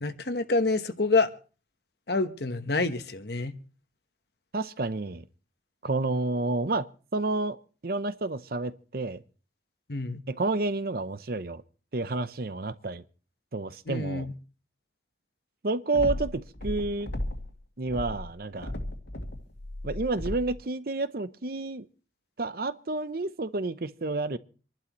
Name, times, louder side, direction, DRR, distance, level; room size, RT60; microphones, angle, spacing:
voice 1, 0.0-1.3 2.1-3.5 9.9-10.2 13.9-14.3, left 3 dB, 60° left, 1.1 m, -27 dB
voice 2, 4.5-5.2 5.8-7.6 7.8-9.2 10.3-11.6 11.9-13.0 13.5-14.3 15.6-17.1 17.8-18.7 19.8-21.9 22.4-24.4, right 2 dB, 55° right, 0.7 m, -30 dB
sound 1, 15.9-17.5 17.8-20.6, left 1 dB, 85° left, 2.3 m, -35 dB
27.0 x 11.5 x 3.0 m
head